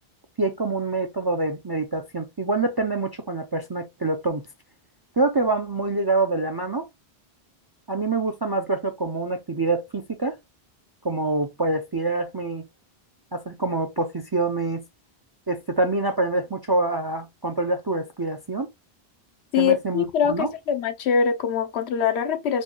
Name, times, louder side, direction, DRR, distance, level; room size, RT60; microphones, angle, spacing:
voice 1, 0.4-4.5 5.2-6.9 7.9-10.4 11.0-12.6 13.3-14.8 15.5-18.7 19.6-20.5, right 3 dB, 40° right, 0.3 m, -26 dB
voice 2, 19.5-22.6, left 7 dB, 90° left, 1.0 m, -23 dB
4.3 x 2.2 x 3.1 m
omnidirectional pair, 1.1 m